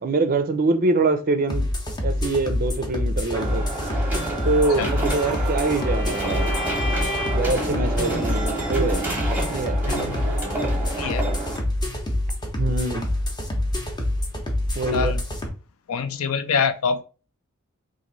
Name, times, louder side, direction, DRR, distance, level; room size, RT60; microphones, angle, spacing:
voice 1, 0.0-1.7 2.0-3.6 4.4-6.5 7.3-9.1 9.5-9.8 12.5-13.1 14.8-15.1, right 3 dB, 40° right, 0.4 m, -24 dB
sound 1, 1.5-15.5, left 1 dB, 20° left, 0.7 m, -26 dB
sound 2, 3.3-11.6, right 2 dB, 10° right, 0.8 m, -29 dB
Bowed string instrument, 4.6-7.6, left 1 dB, 50° left, 1.0 m, -33 dB
voice 2, 9.9-10.3 10.8-11.3 14.9-15.2 15.9-17.0, left 5 dB, 70° left, 0.4 m, -25 dB
3.0 x 2.5 x 3.8 m
head